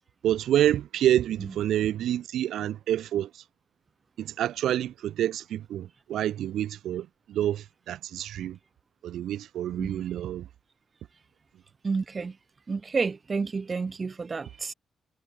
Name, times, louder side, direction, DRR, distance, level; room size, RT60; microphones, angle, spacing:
voice 1, 0.2-3.3 4.2-8.6 9.0-10.5, right 11 dB, 80° right, 2.2 m, -28 dB
voice 2, 11.8-12.4 12.7-14.7, right 4 dB, 30° right, 1.5 m, -30 dB
cardioid pair, 145°, 0 cm